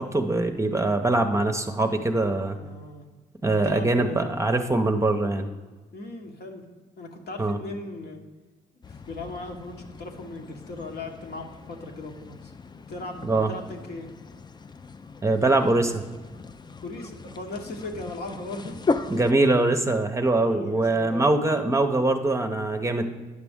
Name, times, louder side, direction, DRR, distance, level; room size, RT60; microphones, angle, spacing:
voice 1, 0.0-2.6 3.4-5.5 7.4-7.6 13.2-13.5 15.2-16.0 19.1-23.1, right 2 dB, 15° right, 6 dB, 0.7 m, -23 dB
voice 2, 2.5-3.0 3.6-4.3 5.9-6.6 7.0-8.2 9.1-12.5 12.9-14.1 16.8-18.8 20.3-21.4, left 2 dB, 60° left, 2 dB, 1.2 m, -38 dB
sound 1, 8.8-19.3, left 3 dB, 25° left, 0.4 m, -37 dB
9.5 x 6.0 x 3.6 m, 1.3 s
hypercardioid pair, 50°, 18 cm